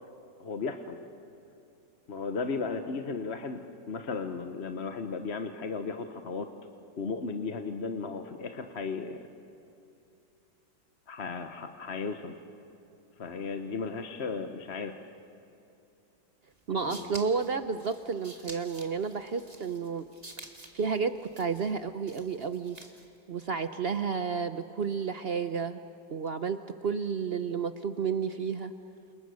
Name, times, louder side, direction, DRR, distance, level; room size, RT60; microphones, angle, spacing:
voice 1, 0.4-1.0 2.1-3.6 3.9-6.5 7.0-9.2 11.1-12.4 13.2-15.0 16.7-17.2, left 4 dB, 40° left, 6 dB, 1.1 m, -35 dB
sound 1, 16.6-23.2, right 2 dB, 20° right, 2.0 m, -49 dB
voice 2, 16.7-20.1 20.7-22.8 23.3-25.8 26.1-28.7, right 5 dB, 65° right, 10 dB, 0.6 m, -31 dB
29.0 x 28.5 x 6.4 m, 2.7 s
omnidirectional pair, 2.0 m